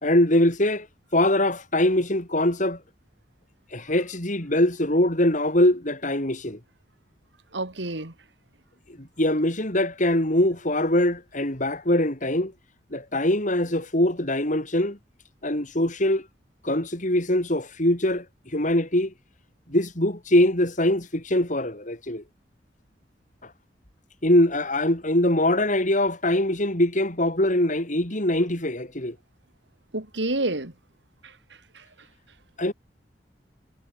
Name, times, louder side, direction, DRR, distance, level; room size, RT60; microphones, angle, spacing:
voice 1, 0.0-0.9 1.1-2.8 3.7-6.6 9.0-12.5 12.9-15.0 15.4-16.3 16.6-19.1 19.7-22.2 23.4-23.5 24.2-29.1 32.6-32.7, left 1 dB, 45° left, 5.1 m, -23 dB
voice 2, 7.5-8.1 29.9-30.7, right 2 dB, 85° right, 3.1 m, -28 dB
head